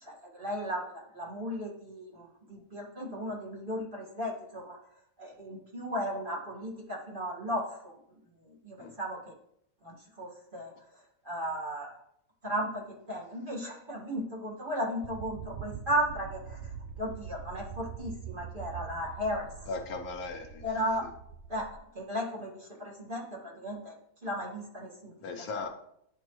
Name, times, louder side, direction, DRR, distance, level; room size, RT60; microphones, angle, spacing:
voice 1, 0.0-4.8 5.2-7.9 8.6-9.2 9.8-10.7 11.3-11.9 12.4-16.6 17.0-19.5 20.6-21.0 21.5-21.7 21.9-22.5 22.8-23.9 24.2-25.1, equal, 35° right, -4 dB, 1.8 m, -35 dB
sound 1, 15.0-21.8, right 7 dB, 75° right, 1.0 m, -44 dB
voice 2, 19.7-20.7 21.0-21.1 25.2-25.7, left 3 dB, 70° left, 4 dB, 1.2 m, -37 dB
10.5 x 4.4 x 3.0 m, 0.75 s
omnidirectional pair, 1.7 m